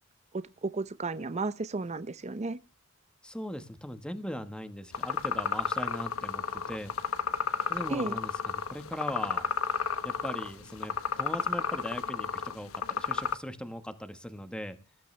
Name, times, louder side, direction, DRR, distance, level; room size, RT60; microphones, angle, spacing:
voice 1, 0.3-2.6 7.9-8.2, right 3 dB, 30° right, 0.6 m, -33 dB
voice 2, 3.2-6.9 7.7-9.4 10.0-14.8, equal, 5° left, 1.3 m, -39 dB
sound 1, 4.9-13.4, left 6 dB, 85° left, 1.2 m, -32 dB
20.0 x 11.5 x 3.3 m
head